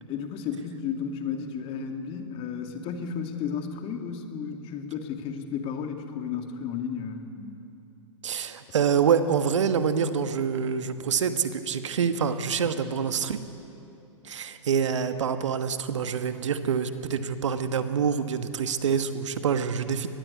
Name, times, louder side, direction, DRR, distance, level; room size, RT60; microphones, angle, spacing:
voice 1, 0.1-7.6, left 6 dB, 35° left, 5 dB, 2.4 m, -33 dB
voice 2, 8.2-13.4 14.2-20.1, right 7 dB, 70° right, 10 dB, 1.3 m, -26 dB
23.5 x 20.0 x 8.4 m, 2.9 s
figure-of-eight pair, 105°, 16 cm